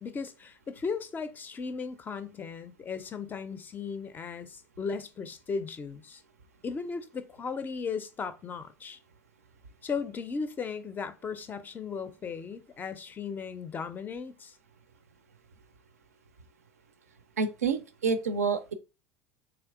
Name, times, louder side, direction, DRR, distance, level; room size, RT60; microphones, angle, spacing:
voice 1, 0.0-6.2 6.6-9.0 9.8-14.5, left 5 dB, 25° left, 0.4 m, -36 dB
voice 2, 17.4-18.7, right 5 dB, 75° right, 0.4 m, -28 dB
3.3 x 2.9 x 2.3 m
figure-of-eight pair, 70°, 8 cm